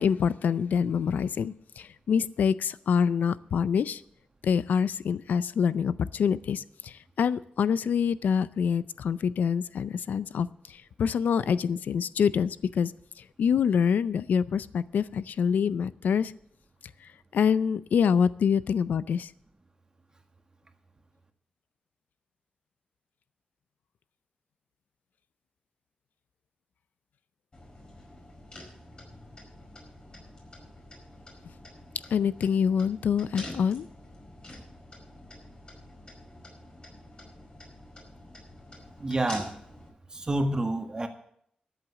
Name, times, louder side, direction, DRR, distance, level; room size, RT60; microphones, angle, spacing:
voice 1, 0.0-4.0 4.4-12.9 13.2-16.3 17.3-19.3 32.1-33.9, left 7 dB, 90° left, 16 dB, 0.4 m, -26 dB
sound 1, 27.5-39.9, left 1 dB, 35° left, 5.0 m, -47 dB
voice 2, 39.0-39.5 40.1-41.1, right 1 dB, 25° right, 5 dB, 1.7 m, -28 dB
13.0 x 8.0 x 7.3 m, 0.68 s
wide cardioid pair, 100°, 3 cm